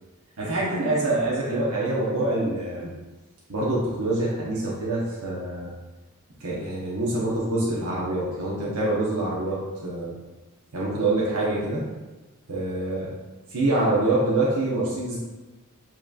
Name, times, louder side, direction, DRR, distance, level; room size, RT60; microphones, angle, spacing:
voice 1, 0.4-2.9 3.5-5.7 6.4-10.1 10.7-11.8 12.5-13.1 13.5-15.2, right 2 dB, 85° right, -6 dB, 0.9 m, -25 dB
7.2 x 3.0 x 2.4 m, 1.2 s
head